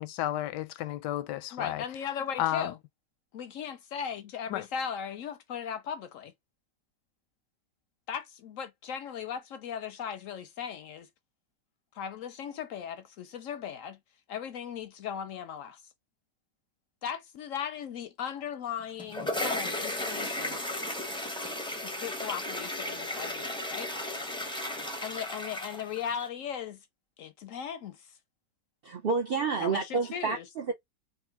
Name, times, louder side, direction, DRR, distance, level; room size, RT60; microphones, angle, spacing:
voice 1, 0.0-1.8 2.4-2.7 4.5-4.7, left 13 dB, 90° left, 1.2 m, -32 dB
voice 2, 1.5-2.8 3.3-6.3 8.1-11.1 11.9-14.0 14.3-15.8 17.0-20.6 21.8-23.9 25.0-26.8 27.2-28.1 29.6-30.4, left 8 dB, 70° left, 0.8 m, -37 dB
sound 1, 18.8-26.3, left 1 dB, 5° left, 0.3 m, -35 dB
voice 3, 28.8-30.7, right 4 dB, 80° right, 0.5 m, -29 dB
3.7 x 2.4 x 3.4 m
omnidirectional pair, 1.8 m